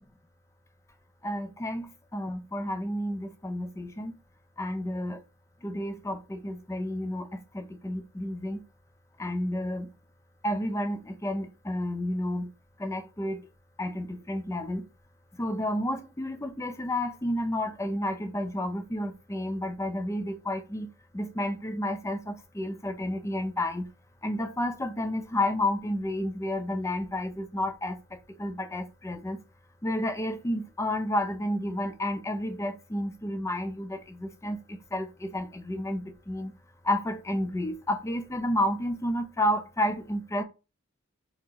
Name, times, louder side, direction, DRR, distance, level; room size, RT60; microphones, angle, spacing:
voice 1, 1.2-4.2 4.6-5.2 5.6-8.6 9.2-9.9 10.4-12.5 12.8-13.4 13.8-14.9 15.3-23.9 24.2-29.4 29.8-36.5 36.8-40.4, left 1 dB, 15° left, 0.4 m, -31 dB
3.9 x 2.9 x 2.7 m
head